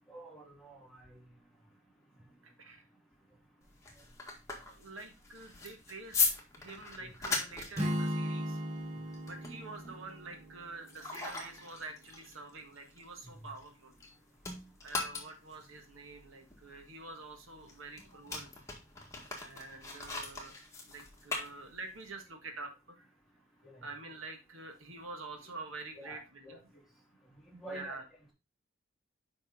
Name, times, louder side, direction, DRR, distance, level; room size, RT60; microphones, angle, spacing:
voice 1, 0.1-1.1 7.0-7.1 23.6-23.7 25.9-26.6 27.5-28.0, right 1 dB, ahead, -3 dB, 2.5 m, -48 dB
voice 2, 2.4-2.9 4.7-8.6 9.2-13.9 14.8-18.5 19.4-23.1 23.8-26.7 27.7-28.0, right 3 dB, 75° right, 5 dB, 1.5 m, -47 dB
sound 1, 3.6-14.1 14.4-22.1, left 4 dB, 15° left, 1.8 m, -39 dB
Strum, 7.7-11.9, equal, 30° right, 1.2 m, -38 dB
7.7 x 5.3 x 3.6 m, 0.27 s
head